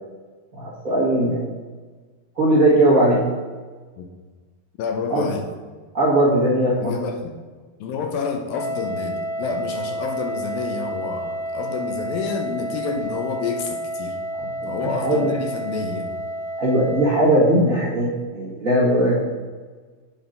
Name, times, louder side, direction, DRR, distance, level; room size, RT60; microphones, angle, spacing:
voice 1, 0.6-1.4 2.3-3.2 5.1-5.3 5.9-6.9 14.3-15.3 16.6-19.2, right 1 dB, 70° right, -7 dB, 0.7 m, -19 dB
voice 2, 4.8-5.4 6.8-7.3 7.8-14.2 14.7-16.1, left 5 dB, 75° left, 3 dB, 2.4 m, -29 dB
Wind instrument woodwind instrument, 8.5-17.4, right 1 dB, 35° left, 2.3 m, -30 dB
9.0 x 4.5 x 5.2 m, 1.4 s
omnidirectional pair, 4.6 m